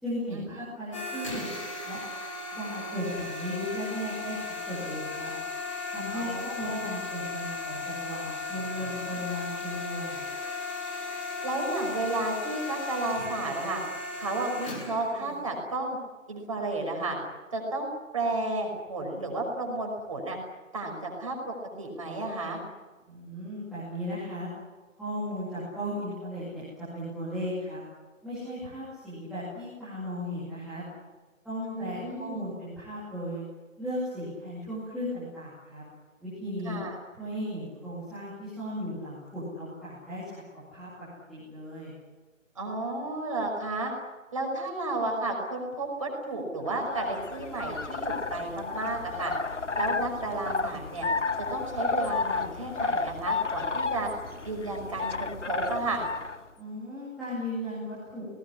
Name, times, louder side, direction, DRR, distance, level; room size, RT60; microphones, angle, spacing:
voice 1, 0.0-1.5 1.8-2.0 2.5-5.3 5.8-6.3 6.6-10.2 23.1-24.5 25.0-27.8 28.2-30.8 31.4-33.4 33.8-35.8 36.2-36.8 37.2-40.4 40.7-40.9 41.3-41.9 56.6-58.3, equal, ahead, -14 dB, 2.4 m, -36 dB
sound 1, 0.9-15.4, left 3 dB, 25° left, 5.2 m, -36 dB
voice 2, 6.1-6.9 11.4-13.8 14.2-16.0 16.3-17.2 17.5-20.4 20.7-22.6 31.6-32.4 36.7-37.0 42.6-43.9 44.3-49.3 49.8-51.1 51.5-54.1 54.4-56.1, right 2 dB, 25° right, 1 dB, 5.7 m, -32 dB
sound 2, 46.7-56.4, left 4 dB, 60° left, 1.5 m, -32 dB
28.0 x 19.5 x 9.8 m, 1.3 s
figure-of-eight pair, 175°, 39 cm